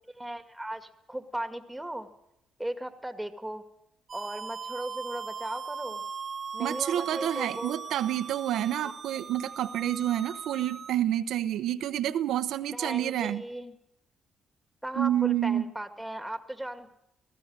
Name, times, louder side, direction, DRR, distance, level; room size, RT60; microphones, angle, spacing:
voice 1, 0.1-2.1 2.6-3.6 4.1-6.0 6.5-7.9 8.8-8.9 12.7-13.7 14.8-16.9, right 1 dB, 5° right, 8 dB, 2.1 m, -37 dB
sound 1, 4.1-10.9, right 6 dB, 45° right, 1.0 m, -39 dB
voice 2, 6.6-13.4 15.0-15.6, right 11 dB, 80° right, 10 dB, 0.9 m, -28 dB
18.0 x 15.5 x 9.6 m, 0.85 s
cardioid pair, 90°, 0 cm